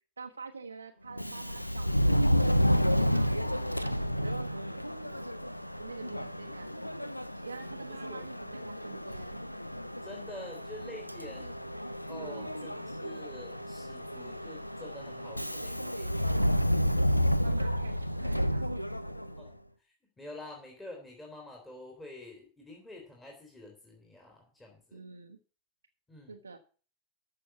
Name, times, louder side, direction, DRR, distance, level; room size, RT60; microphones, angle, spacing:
voice 1, 0.0-2.3 2.9-3.5 3.8-5.3 5.8-9.4 12.1-12.8 17.4-18.9 24.9-25.4 26.3-26.6, right 4 dB, 80° right, 3 dB, 0.9 m, -47 dB
Subway metro underground, 1.1-19.5, equal, 90° left, 0.6 m, -31 dB
voice 2, 5.9-6.2 7.9-8.2 10.0-11.8 12.1-16.3 19.4-25.0 26.1-26.4, left 1 dB, 10° left, 0 dB, 3.0 m, -48 dB
13.5 x 5.6 x 7.0 m, 0.40 s
figure-of-eight pair, 90°, 0 cm